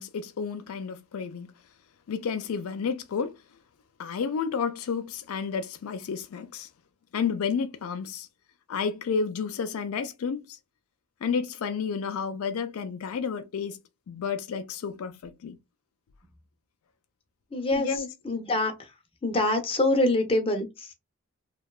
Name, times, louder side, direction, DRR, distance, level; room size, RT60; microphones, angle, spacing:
voice 1, 0.0-1.5 2.1-3.3 4.0-6.7 7.1-8.3 8.7-10.6 11.2-13.8 14.1-15.6 17.7-18.1, left 6 dB, 75° left, 0.4 m, -31 dB
voice 2, 17.5-18.9 19.2-20.9, left 2 dB, 25° left, 0.6 m, -26 dB
2.8 x 2.2 x 2.2 m
head